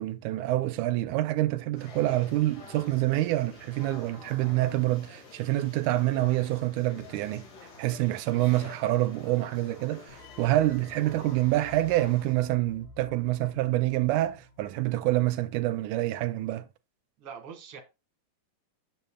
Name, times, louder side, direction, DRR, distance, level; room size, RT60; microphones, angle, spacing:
voice 1, 0.0-7.4 7.8-16.7, right 16 dB, 80° right, 2.0 m, -27 dB
sound 1, 1.8-12.3, left 4 dB, 80° left, 3.6 m, -50 dB
sound 2, 10.1-15.2, left 4 dB, 60° left, 2.1 m, -52 dB
voice 2, 17.2-17.8, right 7 dB, 50° right, 2.0 m, -43 dB
9.0 x 6.9 x 2.2 m
omnidirectional pair, 3.7 m